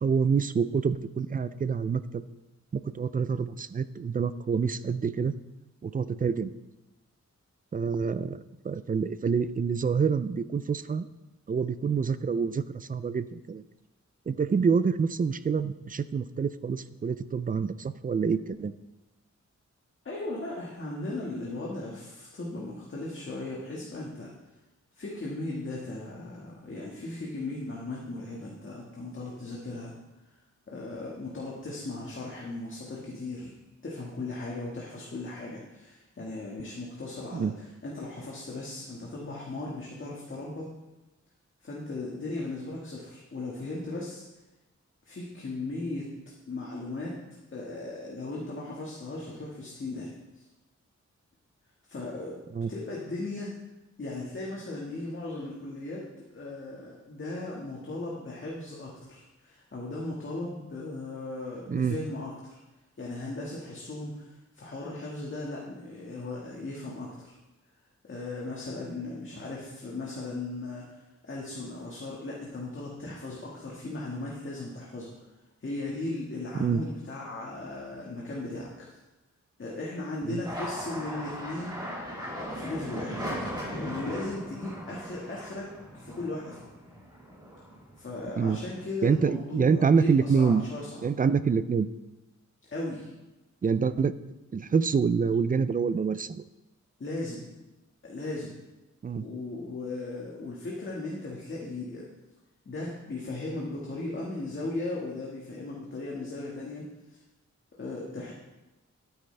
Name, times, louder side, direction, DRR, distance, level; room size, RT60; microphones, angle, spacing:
voice 1, 0.0-2.3 2.7-5.3 5.8-6.5 7.7-11.1 11.5-13.6 14.3-18.7 37.3-37.5 52.5-52.7 61.7-62.0 76.6-76.8 80.2-80.4 88.4-88.6 89.0-90.6 91.0-91.9 93.6-94.2 94.5-96.4 99.0-99.3, right 6 dB, 30° right, 14 dB, 0.4 m, -27 dB
voice 2, 20.0-24.3 25.0-29.9 30.7-33.5 33.8-40.7 41.6-44.2 45.0-46.1 46.5-47.2 47.5-50.4 51.9-52.4 52.7-53.5 54.0-62.6 63.0-67.4 68.0-75.1 75.6-79.0 79.6-81.8 82.3-83.2 83.7-85.7 85.9-86.7 88.0-90.9 92.7-93.1 97.0-97.5 98.0-98.6 99.2-102.1 102.6-107.2 107.8-108.3, left 2 dB, 40° left, -4 dB, 1.7 m, -37 dB
sound 1, 80.4-89.2 89.6-90.3 90.6-91.5, equal, 15° right, 2.6 m, -39 dB
12.5 x 9.2 x 3.3 m, 1.0 s
wide cardioid pair, 140°, 29 cm